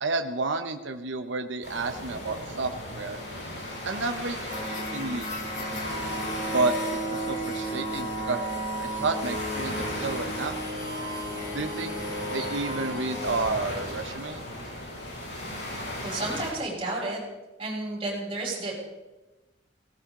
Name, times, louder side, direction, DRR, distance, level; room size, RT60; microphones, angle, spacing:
voice 1, 0.0-3.2 3.8-5.8 6.5-6.7 7.1-8.4 8.8-10.5 11.5-11.9 12.3-14.4, right 3 dB, 85° right, 7 dB, 0.9 m, -31 dB
sound 1, 1.6-16.5, left 1 dB, 65° left, 7.1 m, -37 dB
sound 2, 4.5-13.4, right 1 dB, 45° left, 2.8 m, -34 dB
voice 2, 16.0-17.2 17.6-18.7, right 2 dB, 30° right, -3 dB, 6.5 m, -32 dB
18.0 x 18.0 x 3.8 m, 1.1 s
head